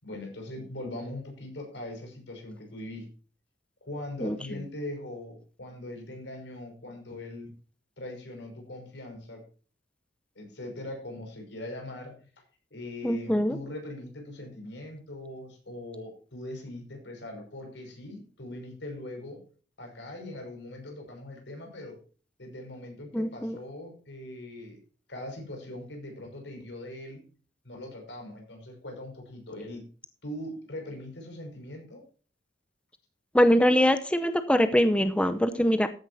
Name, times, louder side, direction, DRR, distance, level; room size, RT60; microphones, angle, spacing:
voice 1, 0.0-3.1 3.8-7.5 8.0-9.4 10.4-12.3 12.7-19.4 19.8-22.0 22.4-24.8 25.1-27.2 27.6-29.8 30.2-32.0, left 1 dB, 80° left, 2 dB, 5.8 m, -41 dB
voice 2, 13.0-13.5 23.1-23.6 33.3-35.9, equal, 5° left, 10 dB, 0.7 m, -23 dB
14.0 x 10.0 x 2.8 m, 0.38 s
head